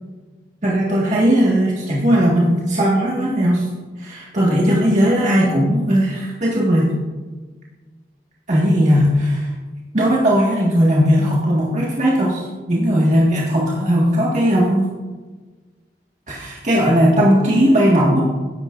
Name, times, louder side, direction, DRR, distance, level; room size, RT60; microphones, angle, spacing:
voice 1, 0.6-3.7 4.0-6.9 8.5-9.5 9.9-14.9 16.3-18.2, equal, 45° right, -5 dB, 1.8 m, -17 dB
14.0 x 10.5 x 2.6 m, 1.3 s
head